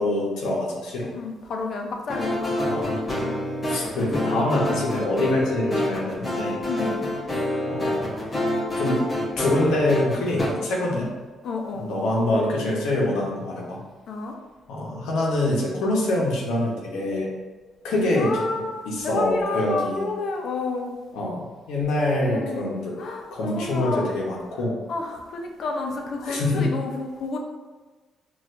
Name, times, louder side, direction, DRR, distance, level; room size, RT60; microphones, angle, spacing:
voice 1, 0.0-1.1 2.6-2.9 3.7-6.6 7.7-8.1 8.8-9.0 9.4-11.1 11.7-13.8 14.7-17.3 17.8-18.4 18.9-20.0 21.1-22.9 23.3-24.8 26.2-26.7, left 1 dB, 90° left, -3 dB, 0.8 m, -25 dB
voice 2, 1.1-2.6 3.2-3.3 4.3-4.4 6.7-7.1 10.9-11.1 11.4-11.9 14.1-14.4 18.2-20.9 22.3-22.6 23.0-24.1 24.9-27.4, left 3 dB, 60° left, 2 dB, 0.6 m, -30 dB
sound 1, 2.1-10.5, left 1 dB, 25° left, 1.0 m, -27 dB
4.3 x 2.4 x 2.5 m, 1.3 s
cardioid pair, 90°, 0 cm